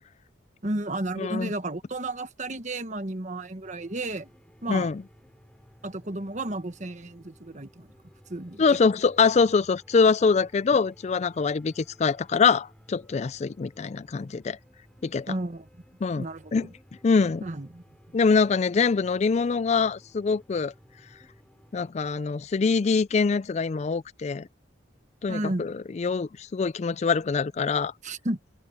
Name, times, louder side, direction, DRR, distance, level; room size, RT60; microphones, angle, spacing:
voice 1, 0.6-4.3 4.6-4.9 5.8-7.9 8.3-8.6 15.3-15.7 16.2-16.7 17.4-17.8 25.3-25.7 28.0-28.4, right 2 dB, 40° right, 1.4 m, -32 dB
voice 2, 1.2-1.5 4.7-5.0 8.6-14.6 15.0-15.3 16.0-16.3 16.5-16.7 17.0-17.4 18.1-20.7 21.7-24.5 25.2-27.9, left 5 dB, 35° left, 0.3 m, -24 dB
sound 1, 3.6-21.9, equal, 5° left, 3.7 m, -57 dB
head